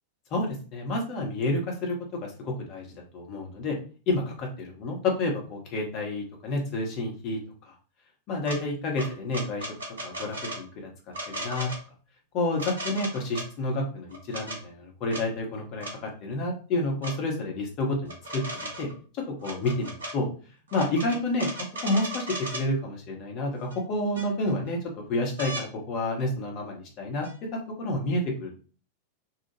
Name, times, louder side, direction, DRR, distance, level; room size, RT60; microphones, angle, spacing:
voice 1, 0.3-2.0 2.2-2.9 3.1-3.8 4.1-7.4 7.7-7.8 8.3-9.7 10.0-10.7 11.3-11.7 12.3-15.9 16.2-18.4 18.8-18.9 19.4-20.3 20.7-21.5 21.8-22.3 22.5-24.8 25.1-27.3 27.8-28.5, left 2 dB, 40° left, 0 dB, 1.0 m, -29 dB
sound 1, 8.4-8.6 9.0-10.6 11.1-11.8 12.6-13.5 14.1-14.6 15.1-15.2 15.8-16.0 17.0-17.1 18.0-18.9 19.4-20.1 20.7-22.7 23.7-23.8 24.1-24.7 25.4-25.7 27.2-27.3, right 1 dB, 70° right, 0.8 m, -36 dB
2.8 x 2.4 x 3.0 m, 0.38 s
figure-of-eight pair, 90°, 0 cm